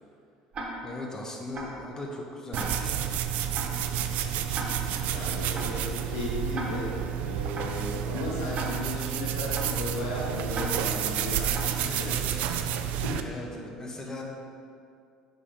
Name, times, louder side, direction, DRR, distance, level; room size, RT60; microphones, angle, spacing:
Tick-tock, 0.5-1.0 1.5-1.9 2.5-3.0 3.5-3.9 4.5-5.0 5.5-5.9 6.5-7.0 7.5-7.9 8.5-9.0 9.5-9.9 10.5-11.0 11.5-11.9, right 2 dB, 40° right, 1.1 m, -37 dB
voice 1, 0.8-3.1 13.2-14.2, left 2 dB, 20° left, 0 dB, 1.0 m, -39 dB
sound 1, 2.5-13.2, right 9 dB, 60° right, 0.3 m, -30 dB
voice 2, 5.0-12.6 13.0-13.4, left 2 dB, 75° left, -5 dB, 0.9 m, -35 dB
5.5 x 5.0 x 3.4 m, 2.4 s
figure-of-eight pair, 60°, 3 cm